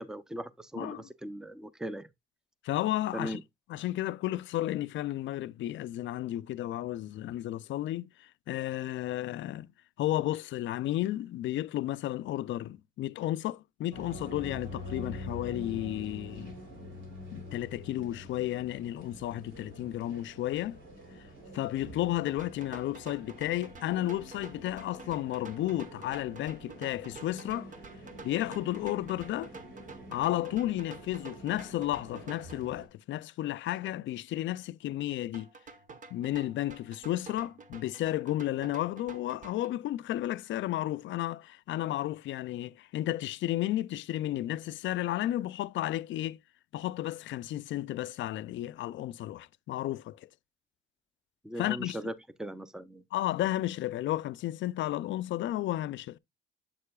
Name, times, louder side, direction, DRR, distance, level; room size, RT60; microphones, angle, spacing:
voice 1, 0.0-2.1 3.1-3.4 51.4-53.0, right 1 dB, 5° right, 0.6 m, -39 dB
voice 2, 0.8-1.1 2.6-3.4 3.7-9.7 10.0-16.5 17.3-20.8 21.2-21.3 21.5-27.7 28.2-29.5 30.1-35.5 36.1-46.4 46.7-50.3 51.6-52.0 53.1-56.2, left 14 dB, 70° left, 0.4 m, -33 dB
sound 1, 13.9-32.9, left 1 dB, 75° right, 3.4 m, -46 dB
sound 2, 22.3-32.6 35.3-39.7, right 4 dB, 40° right, 1.0 m, -50 dB
7.6 x 6.6 x 2.3 m
cardioid pair, 90°, 20 cm